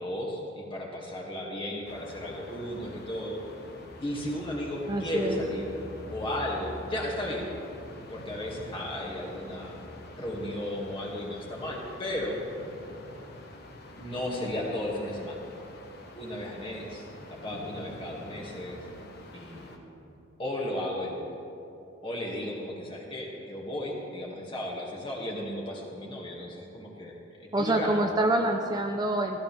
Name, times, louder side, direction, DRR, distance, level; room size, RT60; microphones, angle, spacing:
voice 1, 0.0-3.4 4.0-5.7 6.1-7.5 8.1-9.8 10.2-12.4 14.0-15.4 16.2-18.8 19.3-19.8 20.4-21.2 22.0-28.1, left 1 dB, 25° left, -3 dB, 2.2 m, -34 dB
sound 1, 1.8-19.8, left 1 dB, 50° left, 1.3 m, -46 dB
voice 2, 4.9-5.4 27.5-29.4, right 1 dB, 20° right, 3 dB, 0.6 m, -26 dB
15.5 x 15.0 x 3.5 m, 2.7 s
head